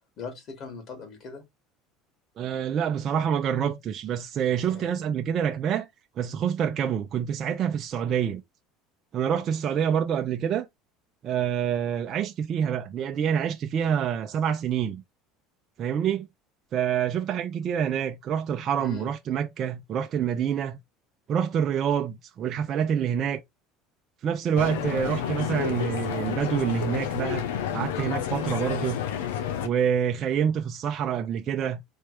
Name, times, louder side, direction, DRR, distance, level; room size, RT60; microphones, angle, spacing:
voice 1, 0.2-1.4 4.6-4.9 18.8-19.1 23.0-23.1, left 4 dB, 50° left, 2.8 m, -40 dB
voice 2, 2.4-5.9 6.2-8.4 9.1-10.7 11.2-15.0 15.8-16.3 16.7-20.8 21.3-23.4 24.2-29.0 29.6-31.8, right 8 dB, 45° right, 0.6 m, -27 dB
sound 1, 24.6-29.7, left 9 dB, 85° left, 0.8 m, -30 dB
4.3 x 3.2 x 3.4 m
supercardioid pair, 90°, 0 cm